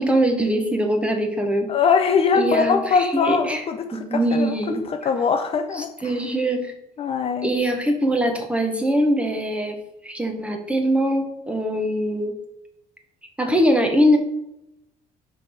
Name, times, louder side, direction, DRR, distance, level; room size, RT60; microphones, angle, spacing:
voice 1, 0.0-1.7 2.3-2.8 3.1-3.6 3.9-4.8 6.0-6.7 7.4-9.8 10.0-12.3 13.4-14.2, equal, 5° right, 4 dB, 0.9 m, -22 dB
voice 2, 1.7-4.6 4.8-6.2 7.0-7.5, left 5 dB, 35° left, 6 dB, 0.5 m, -22 dB
5.7 x 3.4 x 5.4 m, 0.85 s
cardioid pair, 125°, 17 cm